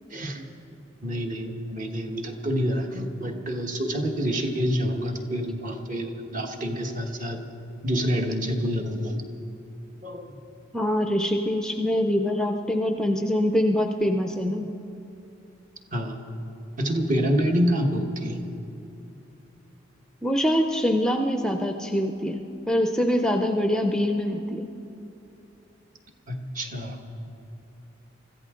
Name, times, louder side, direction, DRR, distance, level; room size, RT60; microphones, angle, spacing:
voice 1, 0.1-0.4 1.0-7.4 7.8-9.2 10.0-10.3 15.9-16.2 16.8-18.4 26.3-27.0, equal, 40° right, 3 dB, 1.4 m, -27 dB
voice 2, 10.7-14.7 20.2-24.7, equal, 5° left, 4 dB, 0.5 m, -24 dB
24.5 x 14.5 x 3.7 m, 2.8 s
head